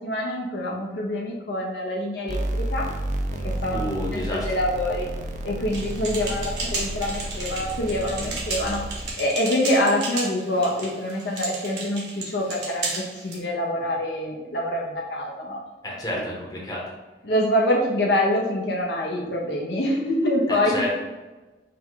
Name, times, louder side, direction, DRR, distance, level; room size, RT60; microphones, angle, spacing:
voice 1, 0.0-2.9 3.3-3.8 4.1-5.1 5.4-8.8 9.1-15.6 16.1-16.2 17.2-20.8, left 1 dB, 75° left, -2 dB, 0.7 m, -25 dB
sound 1, 2.3-9.1, right 1 dB, 40° right, 0.4 m, -31 dB
voice 2, 3.7-4.5 15.8-16.8 20.5-20.9, left 1 dB, 20° left, -4 dB, 0.9 m, -30 dB
sound 2, 5.7-13.4, right 3 dB, 70° right, 1.0 m, -33 dB
5.0 x 2.2 x 3.8 m, 1.2 s
head